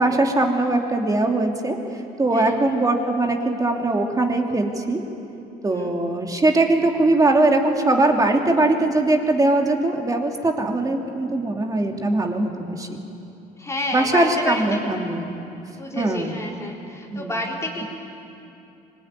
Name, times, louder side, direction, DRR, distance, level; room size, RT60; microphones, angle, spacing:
voice 1, 0.0-1.8 2.2-5.0 5.6-13.0 13.9-15.3 16.0-16.3 17.1-17.4, right 2 dB, 20° right, 2 dB, 2.9 m, -21 dB
voice 2, 13.6-14.8 15.8-17.8, left 1 dB, 15° left, -2 dB, 4.1 m, -29 dB
25.0 x 21.0 x 9.8 m, 2.8 s
cardioid pair, 110°, 17 cm